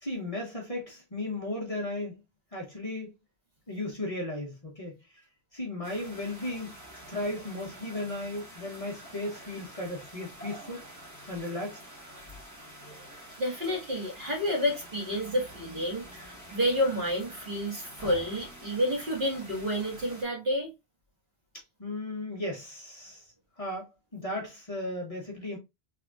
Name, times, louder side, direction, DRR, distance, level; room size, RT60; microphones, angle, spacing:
voice 1, 0.0-2.2 2.5-3.1 3.7-5.0 5.5-6.7 7.1-10.8 11.3-11.8 21.8-23.3 23.6-25.6, left 1 dB, 35° left, 1.0 m, -35 dB
sound 1, 5.8-20.2, right 1 dB, 15° right, 1.2 m, -47 dB
voice 2, 13.4-20.7, equal, 50° right, 1.8 m, -30 dB
3.5 x 3.4 x 2.3 m
omnidirectional pair, 1.1 m